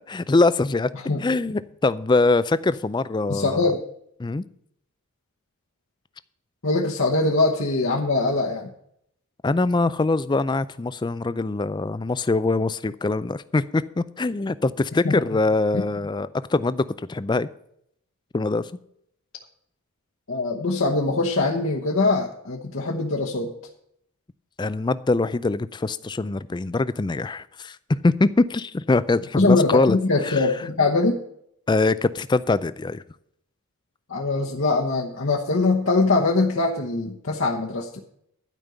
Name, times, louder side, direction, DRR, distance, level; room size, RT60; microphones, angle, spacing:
voice 1, 0.0-0.9 1.2-3.6 4.2-4.4 9.4-17.5 18.3-18.7 24.6-30.0 30.2-30.5 31.7-33.0, left 3 dB, 20° left, 0.3 m, -23 dB
voice 2, 3.3-3.8 6.6-8.7 15.0-15.2 15.7-15.8 20.3-23.5 29.4-31.2 34.1-38.0, left 3 dB, 60° left, 1.1 m, -22 dB
12.5 x 5.3 x 7.9 m
head